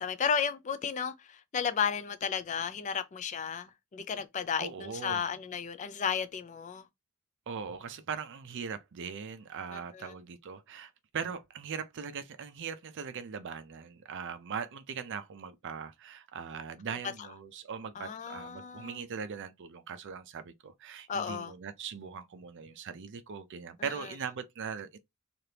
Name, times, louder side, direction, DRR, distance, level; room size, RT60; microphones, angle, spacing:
voice 1, 0.0-6.9 9.7-10.1 18.0-19.0 21.1-21.5 23.8-24.1, left 7 dB, 35° left, 0.3 m, -34 dB
voice 2, 4.6-5.3 7.5-25.0, right 6 dB, 55° right, 0.4 m, -40 dB
3.3 x 2.5 x 2.8 m
head